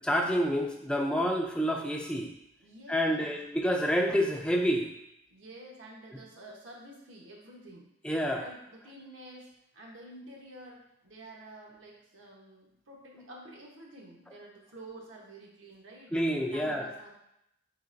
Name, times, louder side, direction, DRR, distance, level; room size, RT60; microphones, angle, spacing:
voice 1, 0.0-2.3 2.9-4.9 8.0-8.5 16.1-16.9, equal, 5° left, 1 dB, 0.4 m, -28 dB
voice 2, 2.6-3.4 5.3-7.9 8.4-16.2 16.5-17.1, right 1 dB, 70° right, -2 dB, 1.0 m, -49 dB
4.7 x 3.8 x 2.5 m, 0.80 s
head